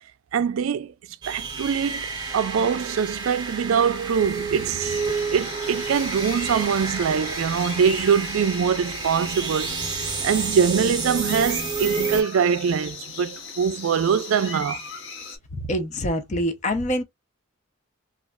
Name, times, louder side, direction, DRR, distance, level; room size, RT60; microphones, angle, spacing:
voice 1, 0.3-0.9 1.3-9.8 10.2-14.8, right 7 dB, 80° right, 0.3 m, -23 dB
sound 1, 1.2-12.2, right 4 dB, 20° right, 0.7 m, -30 dB
sound 2, 4.8-15.4, left 5 dB, 60° left, 0.9 m, -38 dB
voice 2, 15.5-17.0, equal, 35° left, 0.5 m, -25 dB
3.1 x 2.4 x 2.2 m
head